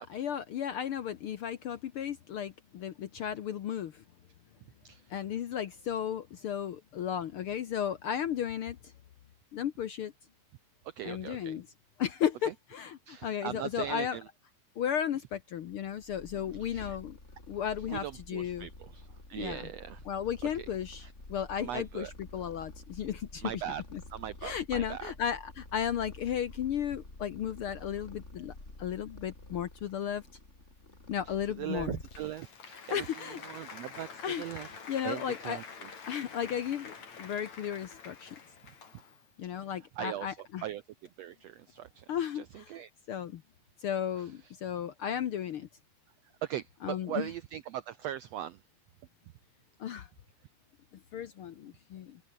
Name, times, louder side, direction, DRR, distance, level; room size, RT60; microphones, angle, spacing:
voice 1, 0.0-4.0 5.1-8.9 9.5-10.1 11.0-11.7 12.0-14.2 14.8-17.2 17.5-18.7 19.4-19.7 20.1-23.6 23.9-24.0 24.4-28.5 28.8-30.2 31.1-32.0 32.9-33.4 34.2-35.6 36.0-38.4 39.4-40.6 42.1-42.8 43.1-43.4 43.8-45.7 46.8-47.3 49.8-50.1 51.1-52.2, left 9 dB, 80° left, 1.2 m, -34 dB
voice 2, 10.8-11.6 13.1-14.2 16.6-17.0 17.9-20.0 20.6-20.7 21.0-21.1 21.6-22.1 23.4-23.8 24.1-25.1 31.3-34.7 35.0-35.9 40.0-40.8 41.2-42.0 42.3-42.9 46.4-48.6, right 12 dB, 85° right, 1.5 m, -40 dB
Purr, 15.7-32.5, left 2 dB, 20° left, 5.2 m, -49 dB
Applause, 31.7-39.3, left 5 dB, 55° left, 5.2 m, -48 dB
omnidirectional pair, 4.0 m